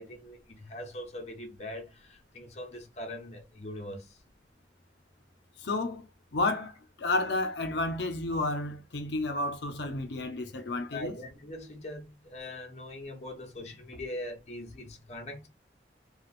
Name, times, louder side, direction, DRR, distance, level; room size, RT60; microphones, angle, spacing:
voice 1, 0.0-4.2 10.9-15.5, left 1 dB, 35° left, 0.8 m, -42 dB
voice 2, 5.6-6.7 7.0-11.1, left 2 dB, 75° left, 0.6 m, -31 dB
3.1 x 2.3 x 2.5 m
head